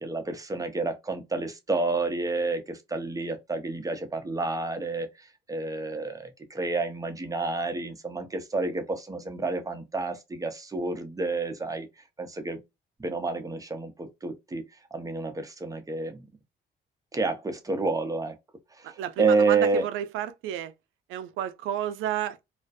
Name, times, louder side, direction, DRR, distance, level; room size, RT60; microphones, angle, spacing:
voice 1, 0.0-12.6 13.0-16.2 17.1-18.4 18.7-19.9, right 3 dB, 15° right, 0.6 m, -29 dB
voice 2, 18.8-20.7 21.1-22.4, right 10 dB, 90° right, 0.4 m, -31 dB
2.4 x 2.1 x 2.5 m
cardioid pair, 90°, 20 cm